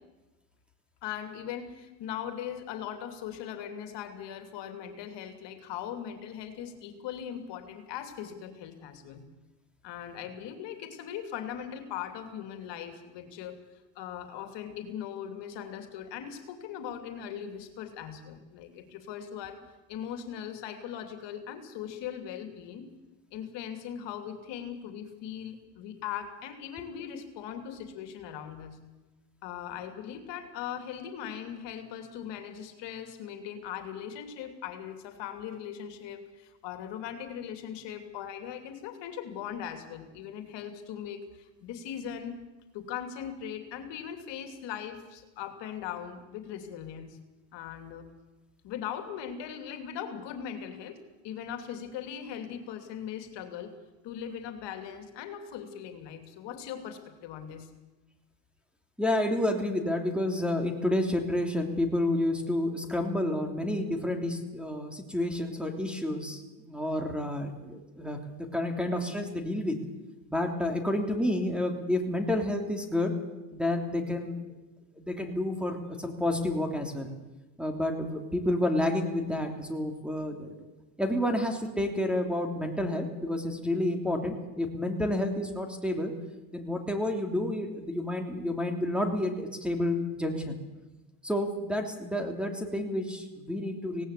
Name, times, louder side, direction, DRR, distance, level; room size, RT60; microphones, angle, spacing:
voice 1, 1.0-9.2 9.8-13.6 13.9-19.6 19.9-22.9 23.3-28.8 29.4-42.4 42.7-47.2 47.5-48.1 48.6-51.0 51.2-53.7 54.0-57.7, left 9 dB, 65° left, 7 dB, 2.9 m, -39 dB
voice 2, 59.0-69.8 70.3-73.1 73.5-74.4 75.0-77.1 77.6-80.5 81.0-86.1 86.5-90.6 91.2-94.0, left 1 dB, ahead, 4 dB, 3.0 m, -30 dB
18.0 x 17.5 x 8.4 m, 1.1 s
supercardioid pair, 105°, 46 cm